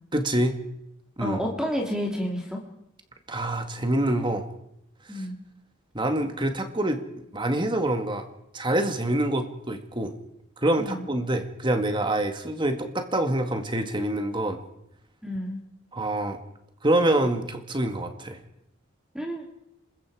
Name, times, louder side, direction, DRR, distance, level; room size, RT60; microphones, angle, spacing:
voice 1, 0.1-0.6 1.2-1.4 3.3-4.5 5.1-5.3 5.9-7.0 7.3-8.2 8.5-10.1 10.6-14.6 15.9-16.4 16.8-18.4, right 1 dB, 20° right, 6 dB, 1.9 m, -26 dB
voice 2, 1.2-2.6 5.1-5.4 10.8-11.0 15.2-15.6 19.1-19.6, equal, 5° right, 1 dB, 2.8 m, -30 dB
26.5 x 21.5 x 4.9 m, 0.81 s
head